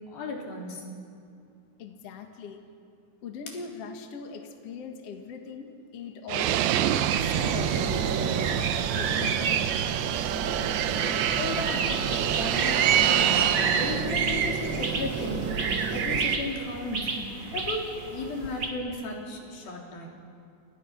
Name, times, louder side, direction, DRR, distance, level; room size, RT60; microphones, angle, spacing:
voice 1, 0.1-0.8 11.4-15.6 15.9-17.1 17.5-20.1, left 2 dB, 75° left, -1 dB, 5.3 m, -35 dB
voice 2, 1.8-2.6 3.2-9.6 10.0-10.1, left 5 dB, 50° left, 3 dB, 2.5 m, -41 dB
Fixed-wing aircraft airplane, 6.3-14.1, right 12 dB, 85° right, 2.7 m, -27 dB
sound 1, 7.1-16.4, right 6 dB, 65° right, 1.2 m, -28 dB
sound 2, 11.5-18.7, right 3 dB, 35° right, 3.0 m, -35 dB
30.0 x 29.0 x 5.9 m, 2.4 s
omnidirectional pair, 4.2 m